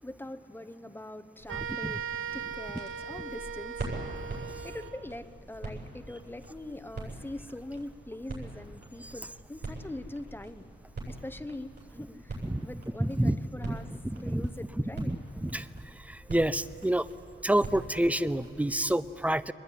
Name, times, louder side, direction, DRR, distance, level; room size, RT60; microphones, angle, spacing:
voice 1, 0.0-3.9 4.6-10.7 11.1-13.9 14.2-15.1, left 1 dB, 10° left, 11 dB, 0.9 m, -43 dB
sound 1, 1.4-18.9, right 2 dB, 55° right, 7.9 m, -44 dB
sound 2, 1.5-5.1, right 7 dB, 90° right, 0.8 m, -38 dB
voice 2, 13.0-13.4 13.6-13.8 14.0-14.5 14.7-15.2 15.4-15.7 16.1-17.0 17.4-19.5, right 1 dB, 5° right, 15 dB, 0.5 m, -28 dB
24.5 x 20.5 x 9.8 m, 2.7 s
wide cardioid pair, 140°, 21 cm